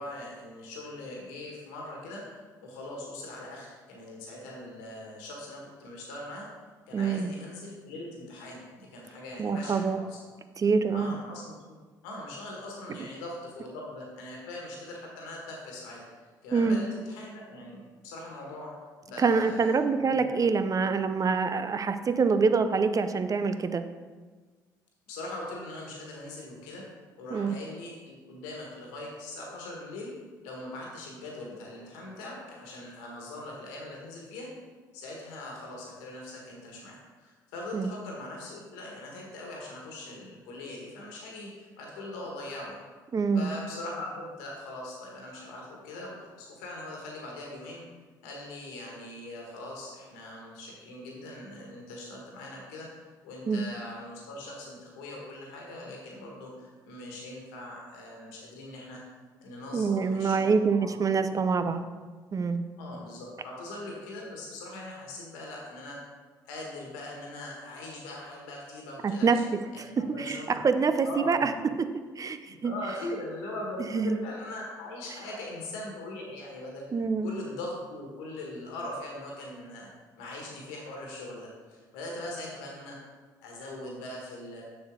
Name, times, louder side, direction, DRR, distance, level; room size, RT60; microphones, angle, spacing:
voice 1, 0.0-6.5 6.9-10.2 10.7-11.5 12.0-16.0 16.4-18.7 19.0-20.4 25.1-26.8 27.2-30.2 30.4-34.5 34.9-42.8 43.3-47.8 48.2-59.0 59.4-61.3 62.8-66.0 66.4-69.4 69.7-70.6 71.0-71.4 72.4-76.9 77.2-79.9 80.2-83.0 83.4-84.6, left 1 dB, 75° left, -2 dB, 1.5 m, -41 dB
voice 2, 6.9-7.3 9.4-10.0 10.6-11.1 16.5-16.8 19.2-23.8 27.3-27.6 37.7-37.9 43.1-43.5 53.5-53.6 59.7-61.8 62.3-62.6 69.0-69.4 69.8-69.9 70.2-71.5 72.2-72.7 73.9-74.2 76.9-77.3, right 5 dB, 35° right, 10 dB, 0.6 m, -25 dB
7.0 x 6.4 x 3.8 m, 1.4 s
hypercardioid pair, 55°, 10 cm